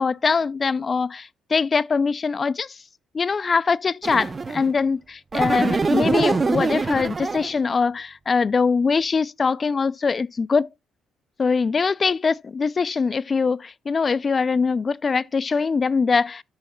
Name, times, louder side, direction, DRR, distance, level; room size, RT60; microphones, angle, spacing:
voice 1, 0.0-2.7 3.1-10.7 11.4-16.4, left 5 dB, 35° left, 0.3 m, -22 dB
sound 1, 4.0-4.7 5.3-7.6, right 4 dB, 30° right, 0.6 m, -24 dB
13.0 x 6.4 x 2.2 m
cardioid pair, 90°, 0 cm